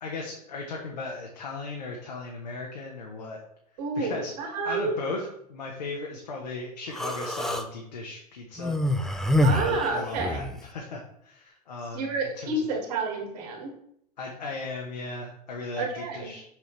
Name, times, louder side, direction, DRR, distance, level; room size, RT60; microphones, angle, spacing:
voice 1, 0.0-3.4 3.9-4.3 4.6-8.8 9.6-12.7 14.2-16.4, left 3 dB, 85° left, 0 dB, 1.3 m, -37 dB
voice 2, 3.8-5.0 9.4-10.4 11.9-13.7 15.8-16.3, right 3 dB, 65° right, 2 dB, 2.0 m, -29 dB
Human voice, 6.9-7.7 8.6-10.6, left 1 dB, ahead, 0.8 m, -26 dB
6.5 x 6.4 x 3.3 m, 0.74 s
hypercardioid pair, 85°, 21 cm